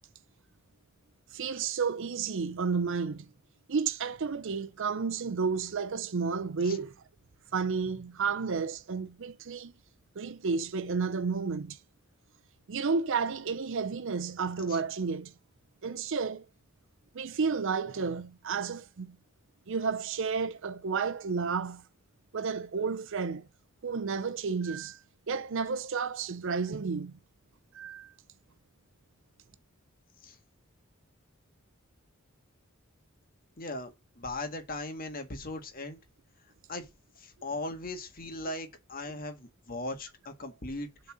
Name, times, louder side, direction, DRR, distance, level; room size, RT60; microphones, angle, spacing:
voice 1, 1.3-3.3 3.7-6.9 7.5-9.7 10.2-11.8 12.7-15.3 15.8-16.4 17.1-19.2 19.7-21.8 22.3-23.5 23.8-25.0 25.3-27.2 27.7-28.1, right 5 dB, 65° right, 0.6 m, -31 dB
voice 2, 33.6-36.0 36.7-36.9 37.2-41.1, left 2 dB, 45° left, 1.8 m, -38 dB
7.2 x 4.0 x 6.2 m
head